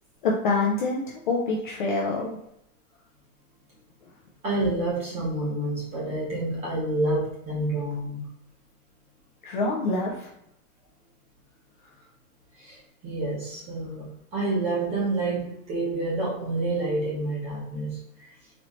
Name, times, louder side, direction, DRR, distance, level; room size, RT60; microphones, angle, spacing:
voice 1, 0.2-2.4 9.4-10.3, left 3 dB, 35° left, -2 dB, 0.4 m, -26 dB
voice 2, 4.4-8.3 12.6-18.0, right 2 dB, 15° right, -5 dB, 0.8 m, -28 dB
4.1 x 3.0 x 3.0 m, 0.77 s
supercardioid pair, 170°, 43 cm